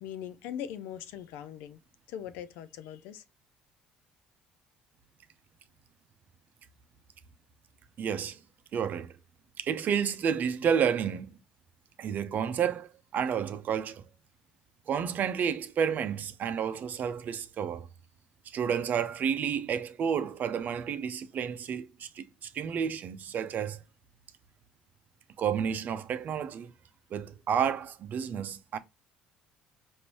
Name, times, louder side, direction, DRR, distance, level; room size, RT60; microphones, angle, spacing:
voice 1, 0.0-1.8 2.1-3.2, left 10 dB, 65° left, 0.5 m, -40 dB
voice 2, 8.0-8.4 8.7-9.1 9.6-11.3 12.0-14.0 14.9-17.9 18.5-23.8 25.4-26.7 27.1-28.8, right 7 dB, 50° right, 0.6 m, -30 dB
5.2 x 2.6 x 2.9 m
hypercardioid pair, 55°, 4 cm